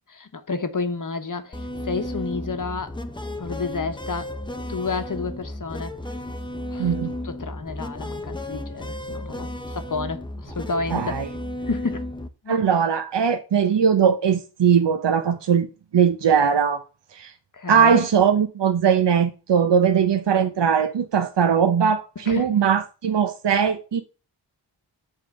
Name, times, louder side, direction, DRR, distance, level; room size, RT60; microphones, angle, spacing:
voice 1, 0.1-2.9 3.4-4.3 4.7-5.9 6.7-6.9 7.2-11.1 11.7-12.6 17.5-18.0 22.2-22.6, left 4 dB, 45° left, 1.0 m, -30 dB
sound 1, 1.5-12.3, left 1 dB, 10° left, 0.8 m, -33 dB
voice 2, 6.8-7.1 10.9-11.3 12.5-15.7 15.9-16.8 17.1-17.3 17.7-24.0, right 7 dB, 65° right, 0.8 m, -20 dB
7.3 x 3.8 x 6.3 m
wide cardioid pair, 95°, 45 cm